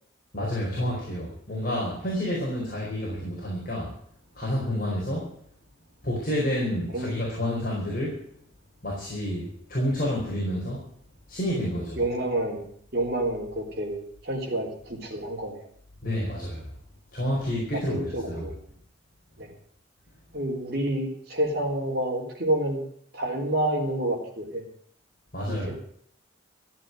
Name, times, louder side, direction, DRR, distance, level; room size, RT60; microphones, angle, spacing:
voice 1, 0.3-3.9 4.3-5.3 6.0-8.2 8.8-10.8 11.3-12.0 16.0-16.7 17.1-18.5 25.3-25.7, equal, 45° left, -5 dB, 4.8 m, -29 dB
voice 2, 11.9-12.7 12.9-15.7 17.7-18.5 19.4-19.5 20.3-22.8 23.1-24.6 25.5-25.7, right 1 dB, 50° right, 1 dB, 3.9 m, -29 dB
14.5 x 8.5 x 9.8 m, 0.64 s
head